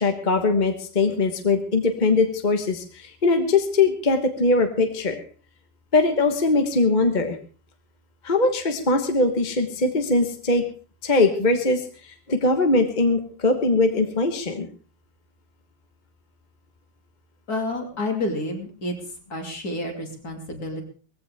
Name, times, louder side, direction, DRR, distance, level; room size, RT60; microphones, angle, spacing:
voice 1, 0.0-5.2 5.9-7.4 8.2-10.6 11.0-14.7, left 3 dB, 25° left, 5 dB, 1.1 m, -21 dB
voice 2, 17.5-18.9 19.3-20.8, left 2 dB, 45° left, 2 dB, 3.2 m, -29 dB
19.0 x 15.5 x 3.5 m, 0.39 s
omnidirectional pair, 2.4 m